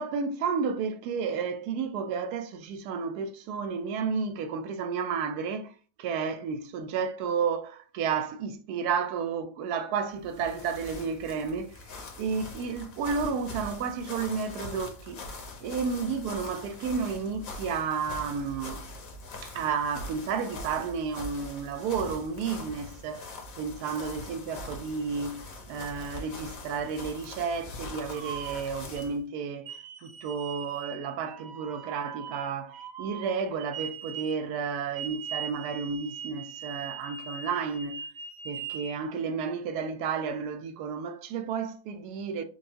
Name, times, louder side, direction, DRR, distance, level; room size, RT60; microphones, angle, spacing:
voice 1, 0.0-11.8 12.2-15.2 15.6-18.8 19.4-38.0 38.4-42.4, right 5 dB, 90° right, 1.1 m, -32 dB
sound 1, 10.1-29.2, left 2 dB, 65° left, 1.3 m, -43 dB
sound 2, 28.0-29.1 29.7-34.5 34.9-38.9, right 7 dB, 65° right, 0.6 m, -41 dB
4.4 x 2.6 x 2.8 m
omnidirectional pair, 1.6 m